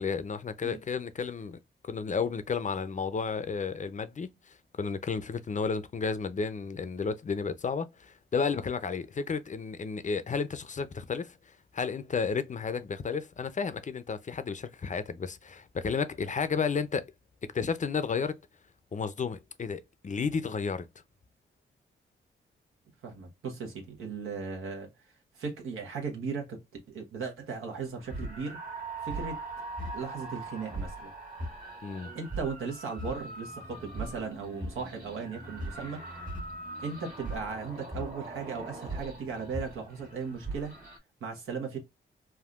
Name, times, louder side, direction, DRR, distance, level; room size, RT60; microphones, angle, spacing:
voice 1, 0.0-1.6 1.8-11.4 11.7-17.1 17.4-18.4 18.9-20.9 31.8-32.1, left 5 dB, 35° left, 0.5 m, -32 dB
voice 2, 23.0-25.1 25.3-28.6 29.0-29.4 29.9-31.1 32.1-36.3 36.8-40.8 41.2-41.8, right 5 dB, 80° right, 1.0 m, -37 dB
sound 1, 28.0-41.0, right 2 dB, 40° right, 1.4 m, -40 dB
3.5 x 2.3 x 2.3 m
cardioid pair, 55°, 21 cm